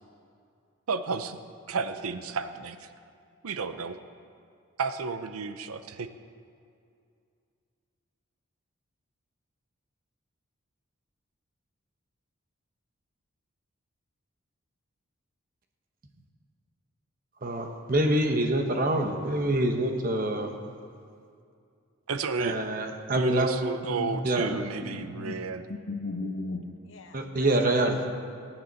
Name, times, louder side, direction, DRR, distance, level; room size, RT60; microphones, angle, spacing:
voice 1, 0.9-1.4 1.7-2.9 3.4-4.0 4.8-6.1 22.1-22.6 23.1-25.6, right 4 dB, 90° right, 10 dB, 0.7 m, -32 dB
voice 2, 17.4-20.5 22.4-23.6 24.2-24.6 27.1-28.0, right 1 dB, 40° right, 4 dB, 1.1 m, -26 dB
voice 3, 23.9-25.4 25.7-28.4, left 2 dB, 60° left, 6 dB, 0.9 m, -37 dB
19.0 x 9.1 x 4.1 m, 2.4 s
head